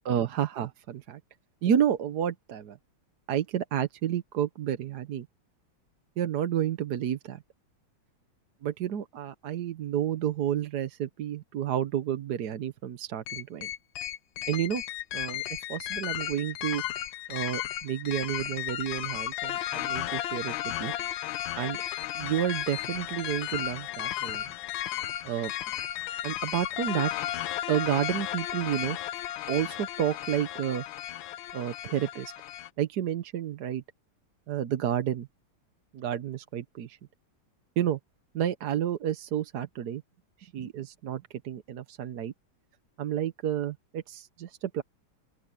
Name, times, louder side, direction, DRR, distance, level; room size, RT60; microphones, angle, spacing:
voice 1, 0.0-1.2 1.6-2.8 3.3-5.3 6.2-7.4 8.6-13.7 14.5-14.8 15.1-15.4 15.7-16.8 17.3-20.9 21.5-21.8 22.1-24.5 25.2-25.5 26.2-27.1 27.7-29.0 29.5-30.8 31.5-32.3 32.8-33.8 34.5-35.3 35.9-37.0 37.8-38.0 38.3-40.0 40.4-42.3 43.0-44.8, right 10 dB, 60° right, 1.3 m, -30 dB
sound 1, 13.3-32.7, left 12 dB, 75° left, 1.4 m, -34 dB
open air
omnidirectional pair, 2.2 m